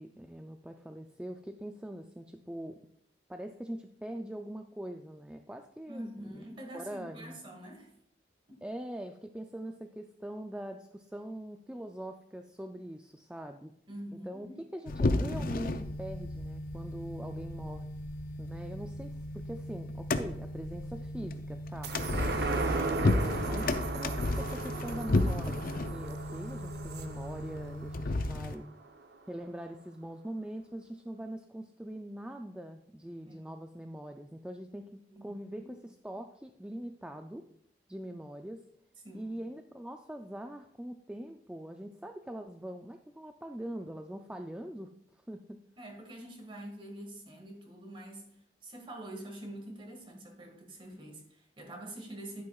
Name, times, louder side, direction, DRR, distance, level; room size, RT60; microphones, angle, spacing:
voice 1, 0.0-2.8 3.3-6.4 6.7-7.4 8.6-13.7 14.3-14.5 14.7-17.9 18.4-21.9 22.5-28.7 29.3-37.4 37.9-38.6 39.1-45.6, right 1 dB, 5° right, 5 dB, 0.3 m, -42 dB
voice 2, 5.9-7.9 8.5-8.6 13.9-14.6 33.3-33.5 35.1-35.7 39.0-39.4 45.8-48.3 48.6-52.4, right 1 dB, 30° right, 2 dB, 1.6 m, -46 dB
sound 1, 14.9-28.6, left 2 dB, 50° left, 0.5 m, -33 dB
sound 2, 21.8-28.6 29.0-29.1, right 3 dB, 65° right, 0.7 m, -36 dB
10.5 x 9.3 x 2.3 m, 0.74 s
head